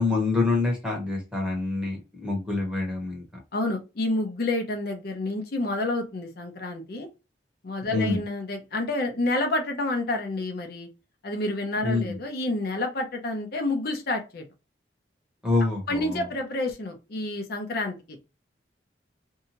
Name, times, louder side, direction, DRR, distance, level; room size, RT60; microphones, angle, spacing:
voice 1, 0.0-3.2 7.9-8.2 11.8-12.1 15.4-16.2, left 3 dB, 5° right, -1 dB, 1.0 m, -26 dB
voice 2, 3.5-7.1 7.6-10.9 11.2-14.4 15.9-18.2, left 2 dB, 60° left, 3 dB, 0.6 m, -29 dB
2.7 x 2.3 x 2.8 m, 0.27 s
head